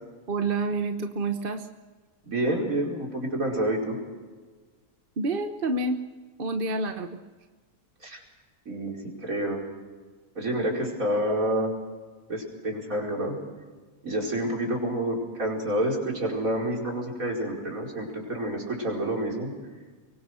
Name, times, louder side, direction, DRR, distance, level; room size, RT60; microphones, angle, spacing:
voice 1, 0.3-1.7 5.2-6.0 6.4-7.2, right 3 dB, 40° right, 6 dB, 1.2 m, -28 dB
voice 2, 2.2-4.0 8.0-8.2 8.7-9.0 9.2-9.6 10.4-11.7 12.3-13.4 14.0-19.5, right 1 dB, 60° right, -1 dB, 5.5 m, -28 dB
24.0 x 23.5 x 6.5 m, 1.4 s
omnidirectional pair, 1.6 m